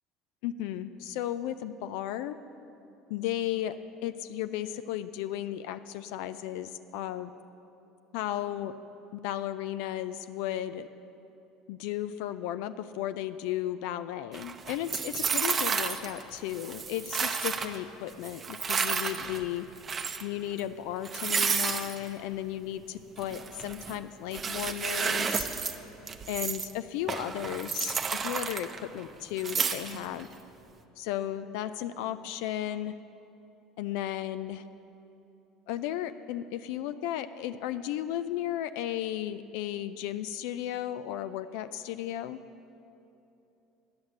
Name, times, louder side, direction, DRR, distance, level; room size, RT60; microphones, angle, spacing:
voice 1, 0.4-2.4 3.1-3.7 4.0-7.3 8.1-8.7 9.1-10.9 11.7-19.6 20.2-25.5 26.3-28.7 28.9-30.3 31.0-32.9 33.8-34.6 35.7-42.4, left 12 dB, 75° left, 12 dB, 0.3 m, -34 dB
sound 1, 14.3-16.2 16.5-17.8 18.2-19.5 19.8-20.3 20.6-20.7 21.0-22.0 23.2-24.0 24.3-25.7 26.1-26.7 27.1-29.0 29.4-30.2, right 6 dB, 35° right, 0.6 m, -31 dB
10.5 x 6.4 x 7.0 m, 2.8 s
hypercardioid pair, 75°, 0 cm